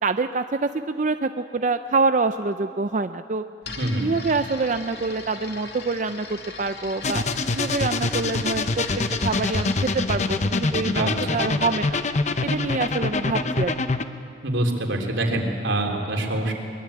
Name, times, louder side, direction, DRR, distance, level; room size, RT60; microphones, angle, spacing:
voice 1, 0.0-3.4 4.0-7.2 7.5-8.9 9.2-12.0 12.4-13.8, right 3 dB, 40° right, 9 dB, 0.5 m, -26 dB
sound 1, 3.6-11.4, left 3 dB, 60° left, 2.4 m, -40 dB
sound 2, 7.0-14.0, left 3 dB, 40° left, 0.9 m, -25 dB
voice 2, 10.9-11.4 14.4-16.5, right 1 dB, 85° right, 2 dB, 3.4 m, -25 dB
22.5 x 22.0 x 8.7 m, 2.5 s
head